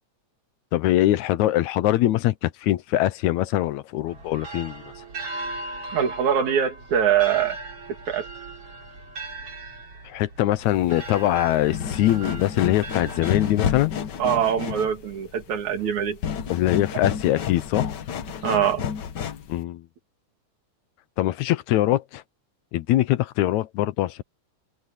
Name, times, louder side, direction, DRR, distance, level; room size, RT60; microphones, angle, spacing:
voice 1, 0.7-4.8 10.1-13.9 16.5-17.9 19.5-19.8 21.2-22.2 22.7-24.2, left 14 dB, 80° left, 2.2 m, -23 dB
sound 1, 4.1-14.0, right 2 dB, 50° right, 5.4 m, -38 dB
voice 2, 5.9-7.6 8.1-8.3 14.2-16.2 18.4-18.8, right 9 dB, 75° right, 3.8 m, -23 dB
sound 2, 10.7-19.6, left 8 dB, 55° left, 1.2 m, -31 dB
omnidirectional pair, 3.3 m